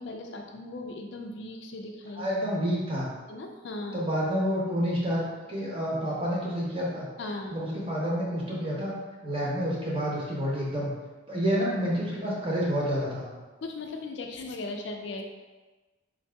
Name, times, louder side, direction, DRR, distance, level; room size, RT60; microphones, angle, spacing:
voice 1, 0.0-2.3 3.3-4.0 7.2-7.6 13.6-15.2, left 2 dB, 60° left, 3 dB, 0.4 m, -38 dB
voice 2, 2.1-3.1 3.9-7.1 7.5-8.9 9.2-10.9 11.3-13.3, equal, 25° right, -5 dB, 0.9 m, -29 dB
3.7 x 2.8 x 3.3 m, 1.2 s
head